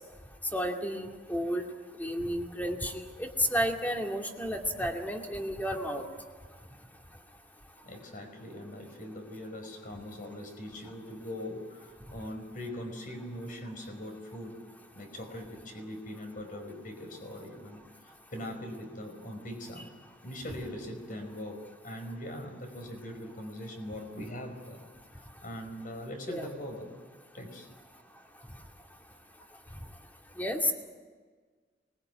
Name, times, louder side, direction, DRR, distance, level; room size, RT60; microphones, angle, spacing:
voice 1, 0.5-1.7 2.0-6.0 26.3-26.4 30.4-30.7, equal, 10° left, 2 dB, 2.4 m, -31 dB
voice 2, 7.8-14.6 14.9-19.9 20.2-24.9 25.4-26.9 27.3-27.7, left 1 dB, 50° left, 5 dB, 5.1 m, -41 dB
25.0 x 21.0 x 9.3 m, 1.5 s
head